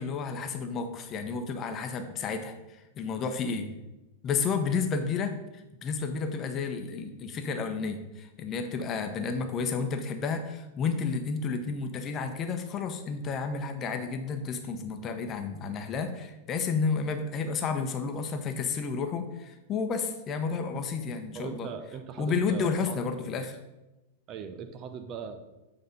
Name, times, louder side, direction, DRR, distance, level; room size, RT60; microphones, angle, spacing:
voice 1, 0.0-3.7 4.2-5.3 5.8-21.7 22.2-23.6, left 5 dB, 30° left, 6 dB, 0.9 m, -31 dB
voice 2, 21.3-23.0 24.3-25.5, right 6 dB, 35° right, 8 dB, 0.7 m, -40 dB
7.9 x 4.0 x 5.2 m, 1.0 s
figure-of-eight pair, 95°, 0 cm